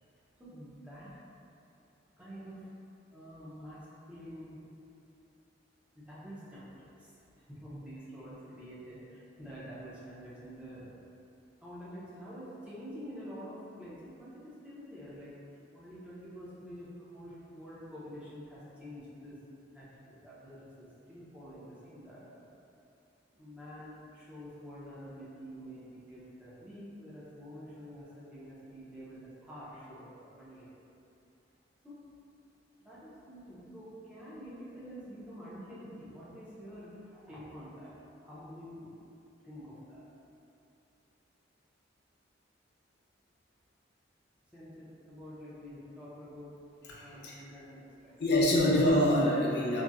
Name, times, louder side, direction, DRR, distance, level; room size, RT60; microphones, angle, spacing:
voice 1, 0.4-1.2 2.2-2.7 3.1-4.6 5.9-10.9 11.6-15.3 15.7-19.4 19.7-22.5 23.4-30.7 31.8-32.0 32.8-37.9 38.2-39.0 39.4-40.1 44.5-46.5 46.9-48.2, equal, 5° right, -10 dB, 0.6 m, -47 dB
voice 2, 46.9-47.3 48.2-49.8, left 1 dB, 60° left, -5 dB, 0.5 m, -25 dB
3.9 x 2.1 x 2.3 m, 2.6 s
head